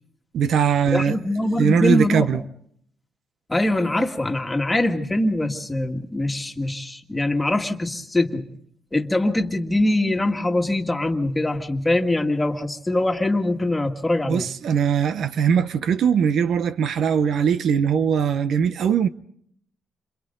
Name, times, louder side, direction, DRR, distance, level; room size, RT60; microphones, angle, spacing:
voice 1, 0.3-1.2 1.6-2.4 14.3-19.1, right 7 dB, 70° right, 0.8 m, -20 dB
voice 2, 0.9-2.3 3.5-8.5 8.9-14.5, left 1 dB, 15° left, 2.1 m, -23 dB
29.0 x 27.0 x 3.9 m
cardioid pair, 95°, 0 cm